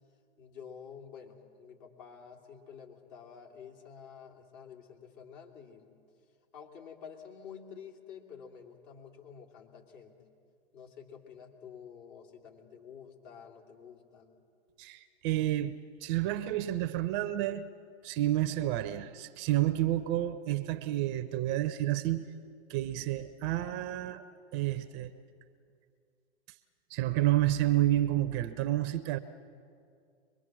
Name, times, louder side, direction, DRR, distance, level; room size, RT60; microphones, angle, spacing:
voice 1, 0.4-5.9 6.5-10.2 10.7-14.4, left 7 dB, 45° left, 1 dB, 3.0 m, -50 dB
voice 2, 14.8-15.7 16.0-17.7 18.0-22.3 22.7-24.2 24.5-25.1 26.9-29.2, right 14 dB, 30° right, 11 dB, 0.7 m, -30 dB
23.5 x 22.5 x 6.3 m, 2.3 s
hypercardioid pair, 120°, 34 cm